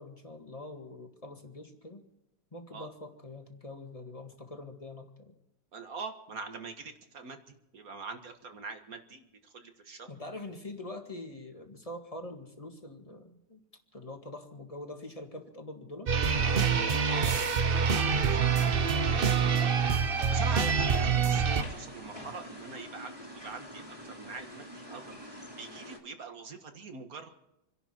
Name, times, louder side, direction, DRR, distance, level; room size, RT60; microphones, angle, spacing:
voice 1, 0.0-2.0 2.5-5.4 10.1-13.6 13.9-16.1 18.9-19.3 20.2-20.5, left 2 dB, 20° left, 3 dB, 1.8 m, -44 dB
voice 2, 5.7-10.1 17.1-17.4 17.6-27.3, right 4 dB, 45° right, 6 dB, 1.9 m, -43 dB
sound 1, 16.1-21.6, right 6 dB, 60° right, 0.5 m, -26 dB
sound 2, 16.3-26.0, equal, 15° right, 2.6 m, -45 dB
28.0 x 11.5 x 4.5 m, 0.85 s
omnidirectional pair, 2.2 m